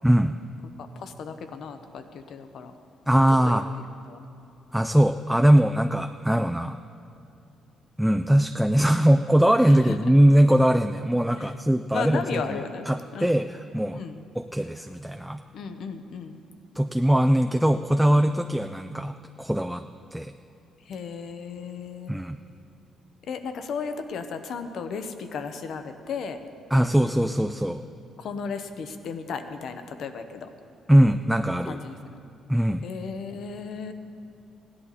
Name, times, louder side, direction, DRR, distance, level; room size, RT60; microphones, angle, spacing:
voice 1, 0.0-0.3 3.1-3.7 4.7-6.8 8.0-12.6 12.9-14.0 14.4-15.4 16.8-19.1 19.4-19.8 20.1-20.3 22.1-22.4 26.7-27.8 30.9-31.8 32.5-32.9, right 1 dB, 5° right, 7 dB, 0.4 m, -21 dB
voice 2, 1.0-2.7 3.4-3.6 4.1-4.2 9.7-10.1 11.4-11.5 11.9-12.9 13.1-13.4 13.9-14.2 15.5-16.4 18.2-18.3 20.9-22.2 23.3-26.4 28.2-30.5 31.6-32.2 32.8-33.9, left 5 dB, 70° left, 8 dB, 0.9 m, -35 dB
16.5 x 11.0 x 4.1 m, 2.7 s
cardioid pair, 90°, 0 cm